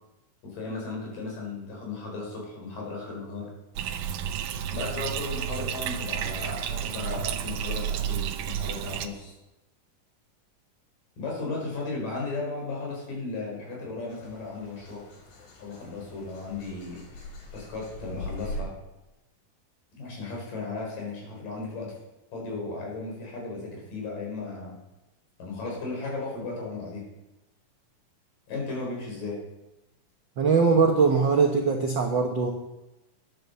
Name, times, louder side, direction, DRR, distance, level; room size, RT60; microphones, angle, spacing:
voice 1, 0.4-3.5 4.7-9.3 11.2-15.0 15.6-17.0 17.5-18.7 20.0-22.0 22.3-24.8 25.4-27.0 28.5-29.4, left 3 dB, 85° left, -2 dB, 6.1 m, -35 dB
Bathtub (filling or washing), 3.8-9.1, right 9 dB, 90° right, 2.4 m, -31 dB
sound 1, 14.1-18.6, left 1 dB, 65° left, 3.4 m, -41 dB
voice 2, 30.4-32.5, right 5 dB, 70° right, 2 dB, 1.0 m, -21 dB
10.5 x 10.5 x 6.7 m, 0.97 s
omnidirectional pair, 3.8 m